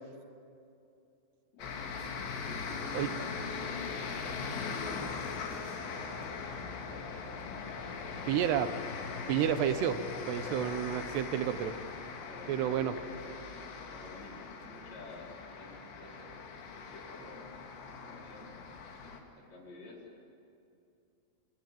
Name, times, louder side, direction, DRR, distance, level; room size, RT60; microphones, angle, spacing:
voice 1, 1.5-4.4 6.8-7.1 8.1-8.7 9.3-9.5 10.3-11.0 12.2-16.4 16.8-17.4 17.9-18.5 19.0-20.0, left 2 dB, 40° left, -2 dB, 5.6 m, -50 dB
sound 1, 1.6-19.2, left 5 dB, 70° left, 4.6 m, -40 dB
voice 2, 8.3-8.7 9.3-10.0 10.3-11.7 12.5-12.9, right 10 dB, 75° right, 11 dB, 2.9 m, -30 dB
28.5 x 24.0 x 7.7 m, 2.6 s
omnidirectional pair, 5.3 m